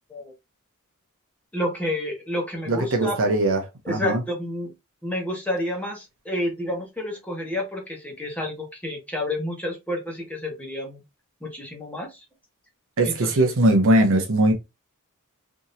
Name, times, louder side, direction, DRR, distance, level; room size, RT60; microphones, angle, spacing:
voice 1, 1.5-3.2 3.8-4.7 5.0-11.0 11.4-12.2 13.0-13.5, left 1 dB, 5° left, 1.1 m, -30 dB
voice 2, 2.7-4.2 13.0-14.5, right 1 dB, 65° right, 0.8 m, -20 dB
3.6 x 2.8 x 2.6 m
head